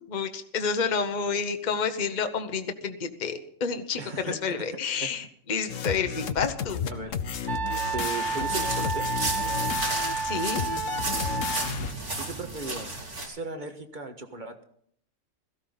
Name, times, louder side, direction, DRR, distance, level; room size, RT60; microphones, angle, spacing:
voice 1, 0.1-6.8 10.2-10.6, left 5 dB, 40° left, 7 dB, 1.1 m, -29 dB
voice 2, 4.0-5.1 6.9-7.2 7.9-9.1 12.2-12.9 13.2-14.6, right 3 dB, 40° right, 6 dB, 1.7 m, -37 dB
sound 1, 5.7-11.9, left 7 dB, 85° left, 1.2 m, -32 dB
Wind instrument woodwind instrument, 7.5-11.7, right 5 dB, 20° right, 0.7 m, -31 dB
sound 2, 8.2-13.3, right 2 dB, 65° right, 3.3 m, -34 dB
17.0 x 14.5 x 4.0 m, 0.63 s
omnidirectional pair, 1.3 m